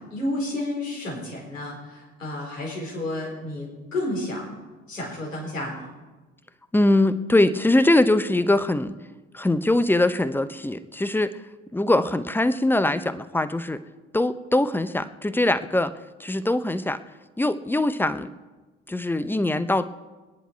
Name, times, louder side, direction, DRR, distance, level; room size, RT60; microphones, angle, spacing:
voice 1, 0.0-4.5 4.9-5.9, left 1 dB, 85° left, -3 dB, 4.3 m, -31 dB
voice 2, 6.7-8.9 9.3-11.3 11.7-13.8 14.1-15.9 16.2-17.0 17.4-18.3 18.9-19.9, left 1 dB, 5° left, 13 dB, 0.7 m, -22 dB
21.5 x 10.0 x 4.6 m, 1.2 s
figure-of-eight pair, 60°, 38 cm